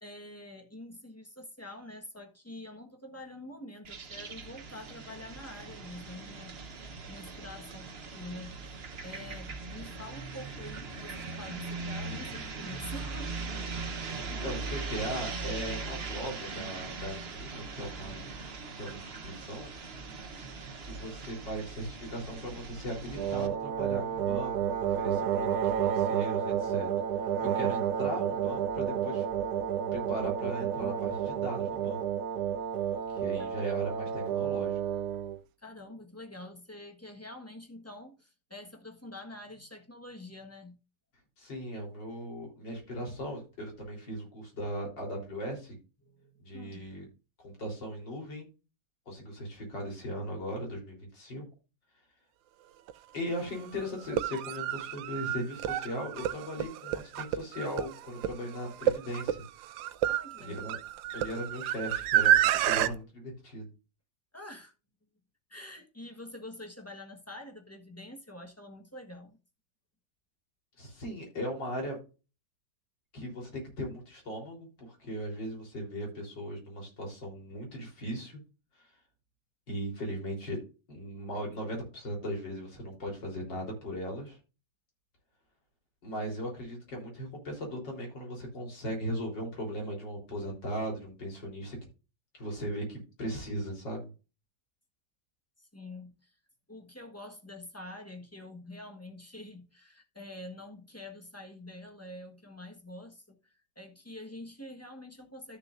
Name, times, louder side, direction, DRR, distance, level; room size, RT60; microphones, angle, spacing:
voice 1, 0.0-8.8 9.0-13.4 33.4-33.7 35.6-40.8 46.0-46.9 60.1-60.6 61.1-61.3 64.3-64.7 65.5-69.4 95.6-96.4 96.7-105.6, left 1 dB, 10° left, 1.2 m, -46 dB
sound 1, 3.9-23.5, right 4 dB, 40° right, 1.1 m, -40 dB
voice 2, 14.4-18.3 18.8-19.7 20.8-26.9 27.2-29.3 29.8-32.0 33.1-34.8 41.4-45.8 46.4-47.1 47.4-48.5 49.1-51.4 53.1-59.4 60.4-60.8 61.1-63.7 70.8-72.0 73.1-78.4 78.8-78.9 79.7-80.6 80.9-84.4 86.0-91.8 92.3-94.1, equal, 75° left, 4.5 m, -38 dB
sound 2, 23.1-35.4, right 9 dB, 70° right, 0.9 m, -31 dB
sound 3, 52.9-53.0 54.0-62.9, right 11 dB, 90° right, 1.4 m, -29 dB
13.5 x 6.9 x 2.6 m
omnidirectional pair, 2.0 m